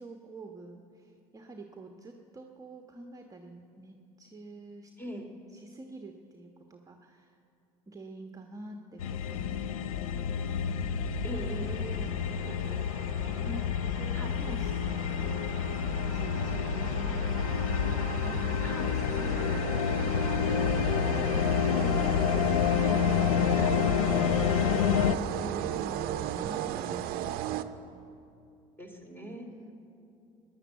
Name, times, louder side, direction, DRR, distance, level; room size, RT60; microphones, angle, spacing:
voice 1, 0.0-4.9 5.5-7.4 7.9-11.2 11.7-14.8 15.2-15.5 15.8-18.0 18.2-18.6 18.9-21.2 21.6-23.6 24.5-27.6 29.5-29.7, right 2 dB, 20° right, 3 dB, 1.2 m, -46 dB
sound 1, 9.0-25.1, left 8 dB, 85° left, 0.5 m, -28 dB
voice 2, 11.2-11.7 14.1-14.4 18.6-19.0 23.6-24.0 25.4-25.6 28.8-29.5, right 1 dB, 10° left, 4 dB, 3.1 m, -40 dB
sound 2, 11.3-28.1, right 12 dB, 60° right, 0.7 m, -37 dB
16.5 x 10.5 x 8.1 m, 2.7 s
hypercardioid pair, 65°, 18 cm